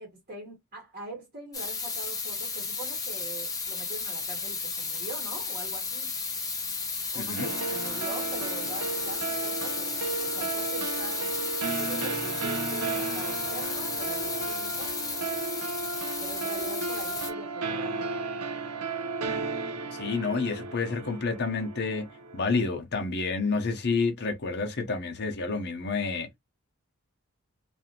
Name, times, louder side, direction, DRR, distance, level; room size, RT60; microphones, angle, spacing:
voice 1, 0.0-6.1 7.1-9.9 10.2-11.3 11.8-15.0 16.2-18.2, right 2 dB, 35° right, 1.1 m, -43 dB
sound 1, 1.5-17.3, left 4 dB, 15° left, 0.7 m, -33 dB
voice 2, 7.1-7.5 19.9-22.1 22.3-26.3, left 4 dB, 50° left, 0.7 m, -29 dB
sound 2, 7.4-22.7, right 4 dB, 85° right, 0.5 m, -34 dB
2.7 x 2.4 x 2.8 m
head